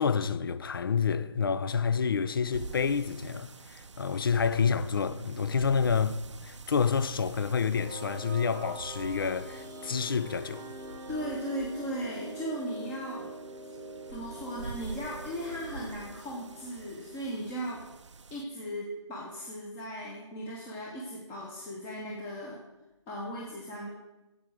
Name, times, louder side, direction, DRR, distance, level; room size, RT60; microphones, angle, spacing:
voice 1, 0.0-10.7, left 6 dB, 45° left, 0.5 m, -28 dB
sound 1, 2.5-18.4, right 4 dB, 70° right, 0.6 m, -47 dB
sound 2, 7.2-17.9, right 2 dB, 5° right, 0.4 m, -45 dB
voice 2, 11.1-13.3 14.1-17.9 18.3-22.6 23.1-23.9, equal, 10° left, 1.0 m, -37 dB
8.3 x 7.7 x 7.7 m
figure-of-eight pair, 155°, 16 cm